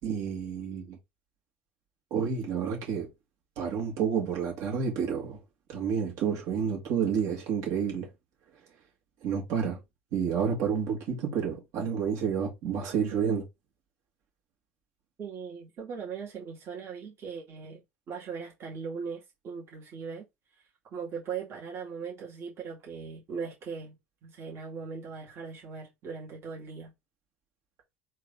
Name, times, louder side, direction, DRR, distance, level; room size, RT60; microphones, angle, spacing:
voice 1, 0.0-1.0 2.1-3.1 3.6-5.4 5.7-8.1 9.2-9.8 10.1-13.5, right 7 dB, 60° right, 2.1 m, -29 dB
voice 2, 15.2-20.3 20.5-20.6 20.9-26.9, right 6 dB, 45° right, 2.0 m, -39 dB
3.8 x 2.8 x 3.8 m
hypercardioid pair, 70°, 6 cm